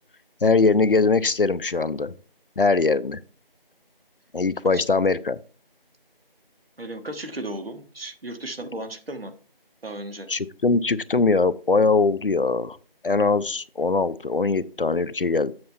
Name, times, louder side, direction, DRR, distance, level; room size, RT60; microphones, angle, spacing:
voice 1, 0.4-2.1 2.6-3.2 4.3-5.4 10.3-12.8 13.0-15.5, left 4 dB, 65° left, 17 dB, 0.5 m, -21 dB
voice 2, 6.8-9.3 9.8-10.3, right 1 dB, 75° right, 8 dB, 1.3 m, -35 dB
7.7 x 5.5 x 4.2 m, 0.39 s
figure-of-eight pair, 180°, 30 cm